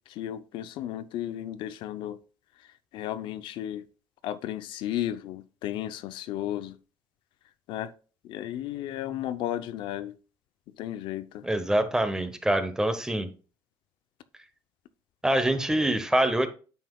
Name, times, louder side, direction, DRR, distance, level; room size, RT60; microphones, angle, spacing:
voice 1, 0.0-2.2 2.9-3.8 4.2-6.7 7.7-7.9 8.2-10.1 10.8-11.4, left 12 dB, 70° left, 0.6 m, -34 dB
voice 2, 11.4-13.3 15.2-16.5, right 1 dB, 5° right, 0.9 m, -25 dB
9.2 x 7.1 x 2.3 m
cardioid pair, 150°, 9 cm